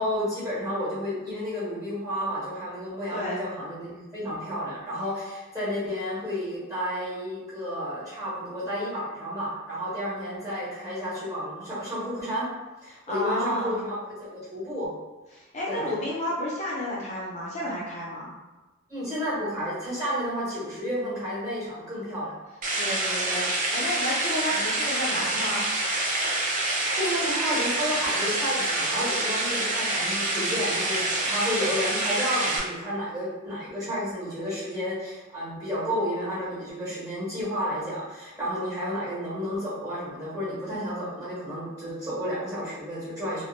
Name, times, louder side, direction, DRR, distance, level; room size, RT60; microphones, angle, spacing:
voice 1, 0.0-12.5 12.8-13.9 14.2-14.9 15.7-15.9 18.9-22.3 24.5-24.6 26.9-43.5, equal, 15° right, -11 dB, 1.1 m, -31 dB
voice 2, 3.1-3.4 12.9-13.8 15.3-18.3 22.8-25.7, left 1 dB, 35° left, -5 dB, 0.5 m, -31 dB
sound 1, 22.6-32.6, right 2 dB, 35° right, 0.4 m, -27 dB
2.2 x 2.1 x 3.0 m, 1.1 s
head